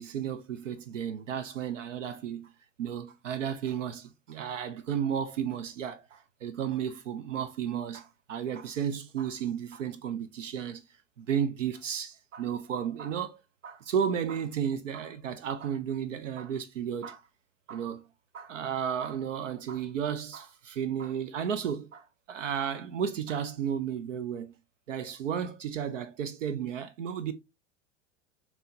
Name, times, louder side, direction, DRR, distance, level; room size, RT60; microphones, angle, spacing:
voice 1, 0.0-2.5 2.8-10.8 11.2-17.2 17.7-18.1 18.3-24.6 24.9-27.3, right 8 dB, 85° right, 0.6 m, -33 dB
5.4 x 3.0 x 2.6 m
hypercardioid pair, 85°, 37 cm